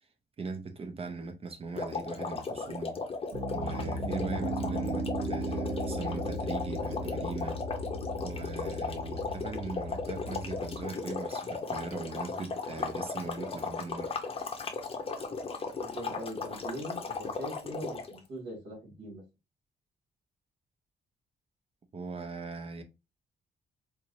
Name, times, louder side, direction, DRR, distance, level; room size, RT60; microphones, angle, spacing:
voice 1, 0.4-3.0 3.5-7.6 8.1-14.1 21.9-22.8, right 4 dB, 30° right, 0.6 m, -40 dB
sound 1, 1.7-18.2, left 4 dB, 30° left, 0.8 m, -36 dB
Piano, 3.3-10.8, right 1 dB, 55° right, 1.4 m, -36 dB
voice 2, 15.7-19.2, right 1 dB, 75° right, 2.5 m, -41 dB
4.5 x 2.6 x 2.7 m
wide cardioid pair, 150°, 18 cm